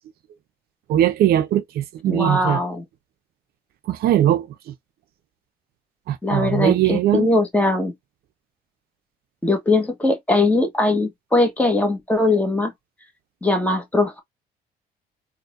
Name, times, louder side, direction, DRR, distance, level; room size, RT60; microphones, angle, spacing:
voice 1, 0.9-2.6 3.9-4.5 6.1-7.3, right 12 dB, 65° right, 0.6 m, -20 dB
voice 2, 2.1-2.8 6.2-7.9 9.4-12.7 13.4-14.2, left 2 dB, 10° left, 1.4 m, -20 dB
3.9 x 2.7 x 2.5 m
cardioid pair, 110°, 17 cm